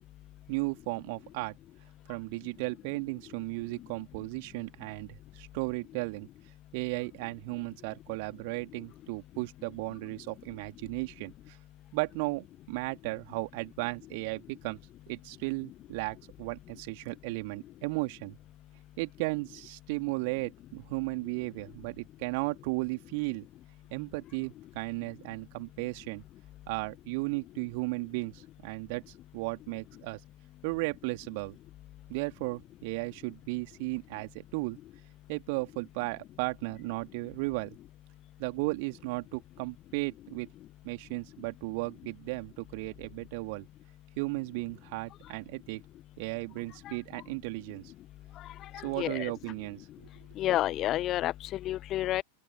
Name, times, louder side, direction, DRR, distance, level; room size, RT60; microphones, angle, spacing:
voice 1, 0.5-1.6 2.1-6.3 6.7-11.6 11.9-14.8 15.1-18.4 19.0-23.5 23.9-26.2 26.7-30.2 30.6-31.6 32.1-34.8 35.3-37.8 38.4-40.5 40.8-43.7 44.2-45.8 46.2-47.9 48.8-50.1, right 28 dB, 45° right, 3.0 m, -35 dB
voice 2, 48.7-49.3 50.4-52.2, left 14 dB, 35° left, 1.4 m, -30 dB
open air
figure-of-eight pair, 90°, 0 cm